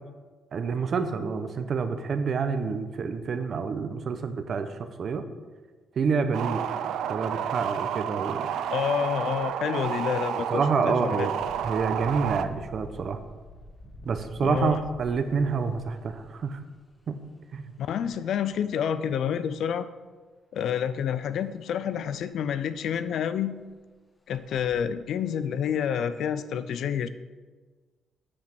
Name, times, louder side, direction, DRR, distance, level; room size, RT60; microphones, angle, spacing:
voice 1, 0.5-5.3 6.0-6.7 7.1-8.5 10.5-11.4 11.6-13.2 14.0-16.6 17.1-17.2 17.5-17.7, right 5 dB, 55° right, 9 dB, 0.8 m, -28 dB
sound 1, 6.3-12.4, right 9 dB, 80° right, 0.4 m, -31 dB
voice 2, 8.7-11.3 14.4-14.8 17.8-19.9 20.5-23.5 24.3-27.1, left 8 dB, 70° left, 12 dB, 0.5 m, -28 dB
Engine, 9.2-9.5 9.9-10.1 11.3-17.1 18.0-18.1 18.5-19.3 21.0-21.2 21.5-21.6 22.1-22.2 22.5-23.0 23.6-23.7 24.3-24.7, equal, 20° left, 1.3 m, -47 dB
8.6 x 5.2 x 6.0 m, 1.4 s
cardioid pair, 90°, 0 cm